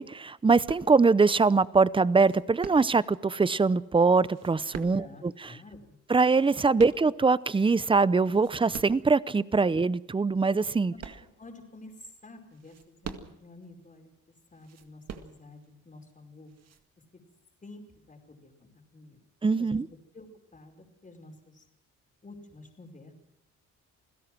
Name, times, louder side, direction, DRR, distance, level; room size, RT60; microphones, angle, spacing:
voice 1, 0.0-5.0 6.1-10.9 19.4-19.8, right 4 dB, 15° right, 0.7 m, -23 dB
sound 1, 0.7-1.3 2.1-3.2 4.2-5.4 6.1-7.5 8.0-9.1 9.7-9.8 10.4-11.7 12.5-13.6 14.5-15.7 16.5-16.8, right 7 dB, 55° right, 2.0 m, -44 dB
voice 2, 4.9-6.0 6.8-7.0 10.9-11.0 11.4-14.1 14.5-16.6 17.1-17.2 17.6-19.2 19.6-19.8 20.1-21.6 22.2-23.1, left 2 dB, 25° left, 4.9 m, -50 dB
28.0 x 16.5 x 6.1 m
cardioid pair, 90°, 30 cm